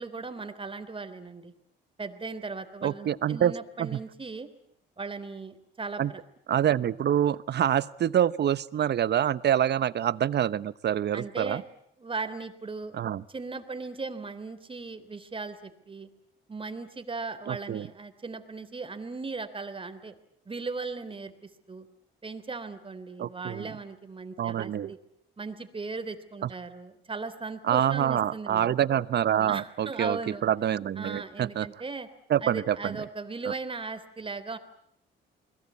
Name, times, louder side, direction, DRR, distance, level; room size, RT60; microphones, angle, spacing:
voice 1, 0.0-1.5 2.0-4.5 5.0-6.2 11.1-11.6 12.0-12.9 13.3-16.1 16.5-20.1 20.5-21.3 21.7-21.9 22.2-25.0 25.4-28.7 29.5-30.4 31.0-32.1 32.4-34.6, right 4 dB, 25° right, 11 dB, 3.4 m, -37 dB
voice 2, 2.8-3.5 3.8-4.0 6.0-6.1 6.5-11.6 12.9-13.2 17.5-17.9 23.2-23.7 24.4-24.9 26.4-26.5 27.6-31.8 32.3-33.1 33.4-33.5, right 10 dB, 60° right, 17 dB, 1.0 m, -26 dB
29.0 x 21.5 x 8.5 m, 0.74 s
cardioid pair, 90°, 20 cm